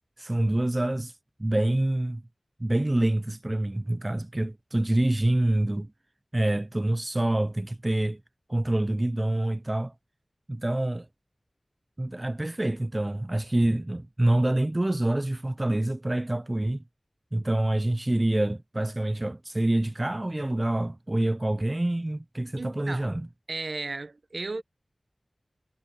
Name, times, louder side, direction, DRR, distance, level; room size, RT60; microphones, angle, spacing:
voice 1, 0.2-1.1 1.4-2.2 2.6-5.9 6.3-8.2 8.5-9.9 10.5-11.1 12.0-16.8 17.3-23.3, right 1 dB, 30° right, 0.3 m, -26 dB
voice 2, 22.6-23.2 23.5-24.6, right 3 dB, 75° right, 0.8 m, -35 dB
wide cardioid pair, 55°, 0 cm